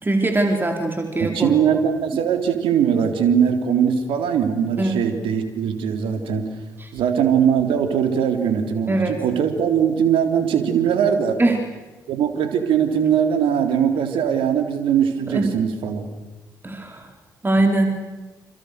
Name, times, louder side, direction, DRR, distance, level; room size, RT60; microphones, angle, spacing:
voice 1, 0.0-1.5 4.8-5.1 6.8-6.9 8.9-9.2 11.4-11.6 15.3-15.6 16.6-17.1 17.4-18.0, right 2 dB, 20° right, 3 dB, 4.3 m, -21 dB
voice 2, 1.2-6.5 6.9-11.4 12.1-16.1, right 8 dB, 65° right, 6 dB, 3.7 m, -20 dB
29.0 x 29.0 x 6.7 m, 1.2 s
figure-of-eight pair, 45°, 10 cm